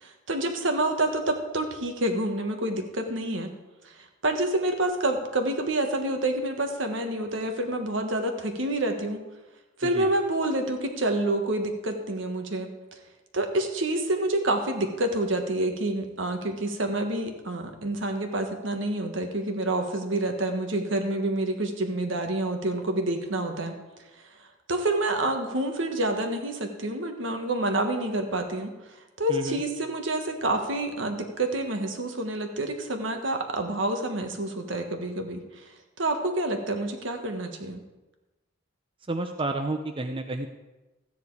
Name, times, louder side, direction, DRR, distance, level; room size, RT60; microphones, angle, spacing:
voice 1, 0.0-3.5 3.8-3.9 4.2-9.2 9.8-12.7 13.3-23.7 24.7-28.7 29.2-35.7 36.0-37.8, right 1 dB, 70° right, 5 dB, 1.5 m, -28 dB
voice 2, 39.1-40.5, right 2 dB, 25° right, 5 dB, 0.6 m, -30 dB
13.5 x 9.4 x 4.8 m, 1.1 s
head